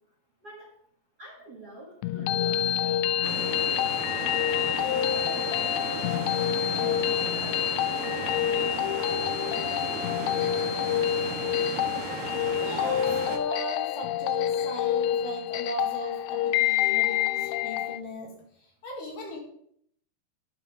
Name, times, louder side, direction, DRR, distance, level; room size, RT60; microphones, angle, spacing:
voice 1, 0.4-0.7 1.2-4.4 5.0-8.7 9.8-11.2, right 1 dB, 45° right, -1 dB, 1.3 m, -48 dB
sound 1, 2.0-18.0, left 12 dB, 85° left, 2.7 m, -27 dB
sound 2, 3.2-13.4, right 6 dB, 65° right, 2.3 m, -36 dB
voice 2, 12.5-18.4 18.8-19.4, equal, 55° left, -1 dB, 3.4 m, -37 dB
11.5 x 5.8 x 6.5 m, 0.67 s
omnidirectional pair, 4.9 m